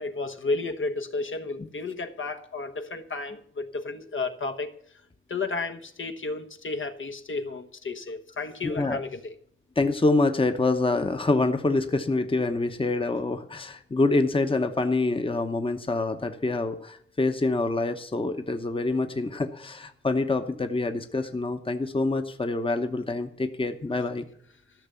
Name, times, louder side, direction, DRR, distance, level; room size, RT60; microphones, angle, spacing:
voice 1, 0.0-4.7 5.3-9.3, left 3 dB, 70° left, 6 dB, 1.2 m, -32 dB
voice 2, 8.6-9.0 9.8-24.2, left 2 dB, 25° left, 8 dB, 0.9 m, -26 dB
13.5 x 6.6 x 8.2 m, 0.66 s
wide cardioid pair, 125°, 21 cm